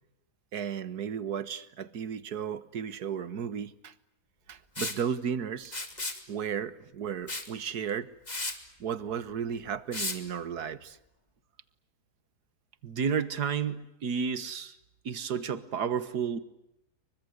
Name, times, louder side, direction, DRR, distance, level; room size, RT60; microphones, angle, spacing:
voice 1, 0.5-3.9 4.5-5.8 6.3-8.1 8.8-11.0, right 7 dB, 75° right, 15 dB, 1.8 m, -34 dB
Liquid, 4.8-5.0 5.7-6.2 7.3-7.5 7.9-8.0 8.3-8.6 9.9-10.2, left 2 dB, 25° left, 2.8 m, -34 dB
voice 2, 12.8-14.7 15.1-16.4, right 6 dB, 90° right, 14 dB, 2.1 m, -31 dB
29.5 x 24.5 x 8.0 m, 0.83 s
omnidirectional pair, 1.7 m